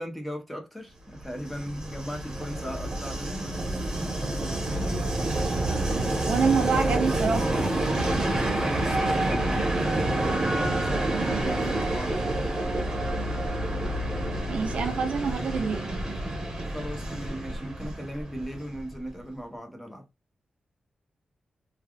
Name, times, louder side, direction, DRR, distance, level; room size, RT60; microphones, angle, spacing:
voice 1, 0.0-3.5 8.5-12.5 16.7-20.0, equal, 5° left, 0.9 m, -37 dB
Train, 1.2-18.9, right 1 dB, 30° right, 1.1 m, -28 dB
voice 2, 6.3-7.5 14.5-15.9, right 5 dB, 70° right, 0.5 m, -26 dB
3.3 x 2.3 x 2.3 m
wide cardioid pair, 105°, 2 cm